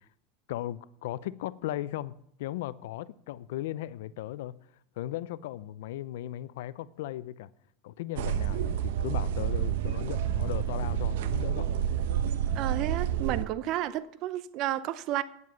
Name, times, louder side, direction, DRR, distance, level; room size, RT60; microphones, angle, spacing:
voice 1, 0.5-2.1 2.4-4.6 5.0-7.5 7.8-11.7, left 14 dB, 75° left, 0.5 m, -37 dB
sound 1, 8.2-13.5, right 10 dB, 75° right, 0.8 m, -29 dB
voice 2, 12.5-15.2, right 13 dB, 45° right, 0.6 m, -31 dB
9.5 x 7.6 x 7.0 m
supercardioid pair, 135°, 0 cm